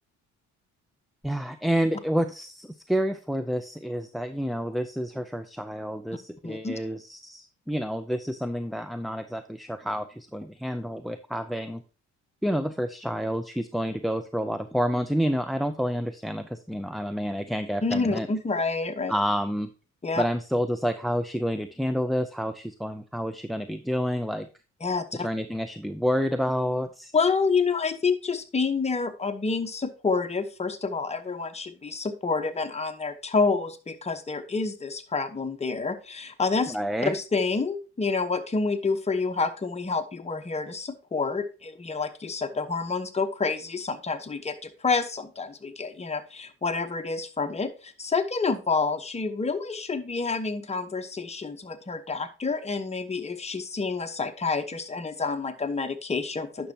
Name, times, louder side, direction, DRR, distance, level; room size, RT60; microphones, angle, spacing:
voice 1, 1.2-11.8 12.4-18.3 19.1-19.7 20.2-24.5 25.1-27.1 36.7-37.2, equal, ahead, 11 dB, 0.4 m, -29 dB
voice 2, 6.4-6.8 17.8-19.1 20.0-20.2 24.8-25.3 27.1-36.8 37.0-56.7, left 4 dB, 20° left, 7 dB, 1.0 m, -28 dB
10.0 x 6.2 x 2.8 m, 0.33 s
cardioid pair, 90°, 30 cm